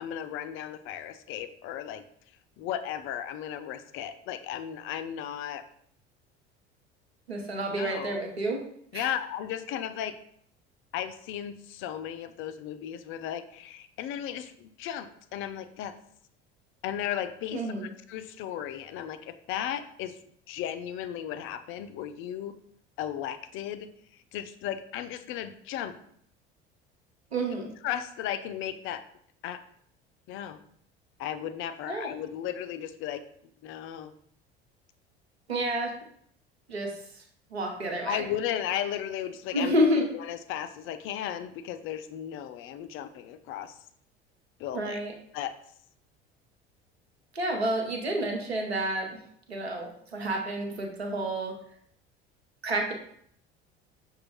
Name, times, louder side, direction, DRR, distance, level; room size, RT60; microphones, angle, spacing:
voice 1, 0.0-2.0 2.6-5.6 7.7-8.2 8.9-10.1 10.9-15.9 16.8-20.2 20.5-22.5 23.0-23.9 24.3-25.9 27.5-29.0 29.4-29.6 30.3-30.6 31.2-33.2 33.6-34.1 38.0-39.7 40.1-43.8 44.6-45.0 45.3-45.5, left 10 dB, 45° left, 11 dB, 0.4 m, -35 dB
voice 2, 7.3-8.6 8.9-9.1 17.5-17.9 27.3-27.7 31.9-32.1 35.5-35.9 36.7-36.9 37.5-38.2 39.5-40.0 44.7-45.1 47.3-49.2 49.5-51.5 52.6-52.9, right 1 dB, 90° right, 2 dB, 0.8 m, -29 dB
6.1 x 2.3 x 3.0 m, 0.66 s
figure-of-eight pair, 65°, 31 cm